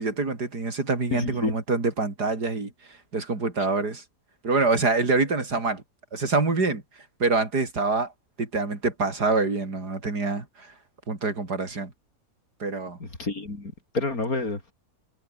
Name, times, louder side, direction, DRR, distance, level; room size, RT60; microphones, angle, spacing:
voice 1, 0.0-2.7 3.1-4.0 4.4-5.8 6.1-6.8 7.2-8.1 8.4-10.7 11.1-11.9 12.6-13.0, right 3 dB, 75° right, 4.6 m, -25 dB
voice 2, 1.1-1.5 13.2-14.7, left 3 dB, 60° left, 4.8 m, -29 dB
omnidirectional pair, 1.7 m